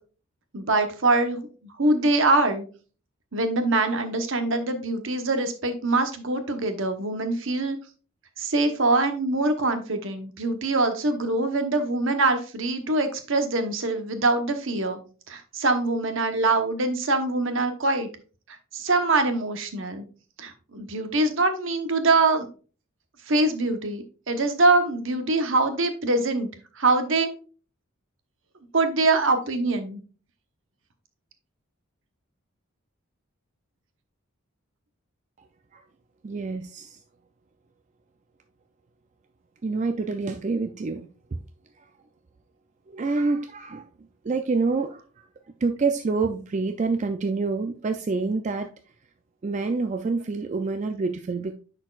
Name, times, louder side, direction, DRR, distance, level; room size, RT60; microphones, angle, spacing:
voice 1, 0.5-2.6 3.3-7.8 8.4-15.0 15.3-18.1 18.7-20.0 20.4-22.5 23.3-26.5 26.8-27.3 28.7-30.0, right 2 dB, 65° right, 7 dB, 1.0 m, -24 dB
voice 2, 36.2-37.0 39.6-41.4 41.8-41.9 42.9-43.9 44.2-45.2 45.6-48.7 49.4-51.6, right 4 dB, 35° right, 7 dB, 0.4 m, -27 dB
10.0 x 4.4 x 2.4 m, 0.37 s
head